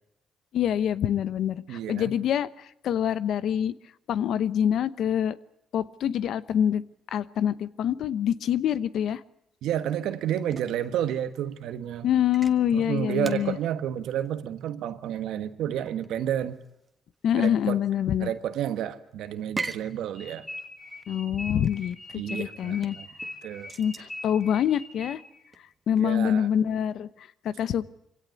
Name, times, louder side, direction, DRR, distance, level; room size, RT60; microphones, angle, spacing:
voice 1, 0.5-2.5 2.8-3.7 4.1-5.4 5.7-6.8 7.1-9.2 12.0-13.6 17.2-18.3 21.1-22.0 22.3-23.0 23.8-25.2 25.9-27.1 27.4-27.9, left 9 dB, 75° left, 15 dB, 0.9 m, -25 dB
voice 2, 1.7-2.1 9.6-12.1 12.7-16.6 17.3-17.8 18.2-20.5 22.1-23.1 23.4-23.7 26.0-26.5, right 10 dB, 85° right, 10 dB, 1.4 m, -30 dB
sound 1, 9.7-26.2, right 3 dB, 25° right, 1.5 m, -44 dB
sound 2, 20.2-25.5, left 1 dB, 15° left, 3.9 m, -41 dB
23.5 x 17.0 x 9.2 m, 0.81 s
cardioid pair, 90°, 0 cm